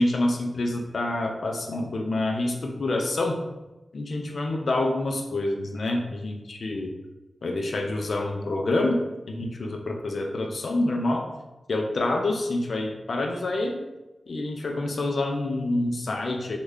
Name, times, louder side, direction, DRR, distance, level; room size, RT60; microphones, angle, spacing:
voice 1, 0.0-3.5 3.9-6.9 7.4-11.3 11.7-13.8 14.3-16.6, left 2 dB, 55° left, 3 dB, 0.5 m, -27 dB
3.5 x 2.3 x 3.2 m, 1.0 s
wide cardioid pair, 130°, 0 cm